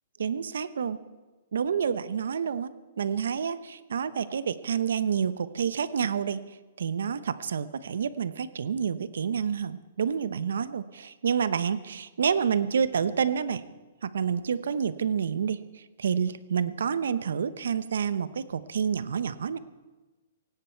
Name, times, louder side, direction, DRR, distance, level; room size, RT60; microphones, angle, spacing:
voice 1, 0.2-1.0 1.5-2.7 3.0-6.4 6.8-13.6 14.0-19.6, right 7 dB, 80° right, 15 dB, 0.9 m, -28 dB
17.5 x 17.0 x 4.6 m, 1.2 s
hypercardioid pair, 165°, 0 cm